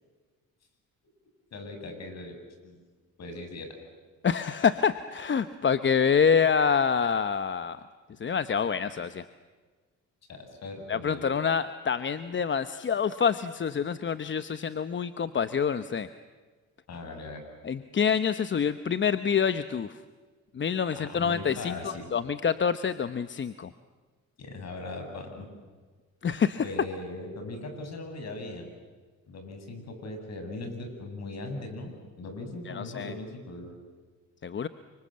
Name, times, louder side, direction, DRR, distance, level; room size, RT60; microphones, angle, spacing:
voice 1, 1.5-2.4 2.6-2.8 3.2-3.8 10.3-11.3 16.9-17.4 21.0-22.1 24.4-25.5 26.6-28.7 29.3-33.7, left 2 dB, 60° left, 5 dB, 7.2 m, -39 dB
voice 2, 4.2-7.8 8.2-9.2 10.9-16.1 17.6-20.0 20.5-23.7 26.2-26.6 32.7-33.1 34.4-34.7, left 6 dB, 40° left, 12 dB, 1.0 m, -26 dB
29.5 x 25.5 x 7.6 m, 1.4 s
cardioid pair, 90°, 30 cm